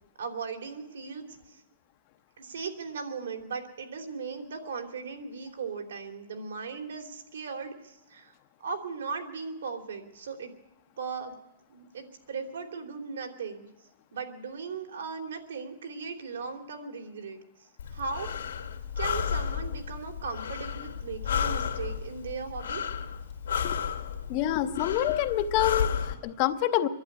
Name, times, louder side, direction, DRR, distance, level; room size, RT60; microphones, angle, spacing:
voice 1, 0.2-1.2 2.4-8.3 8.6-10.5 11.0-11.3 11.7-13.7 14.1-17.4 17.9-18.3 19.0-22.8, right 5 dB, 80° right, 4 dB, 3.1 m, -37 dB
Breathing, 17.8-26.1, left 7 dB, 80° left, 2.2 m, -32 dB
voice 2, 24.3-26.9, left 12 dB, 25° left, 10 dB, 0.7 m, -27 dB
23.5 x 11.0 x 9.8 m, 0.98 s
hypercardioid pair, 180°, 0 cm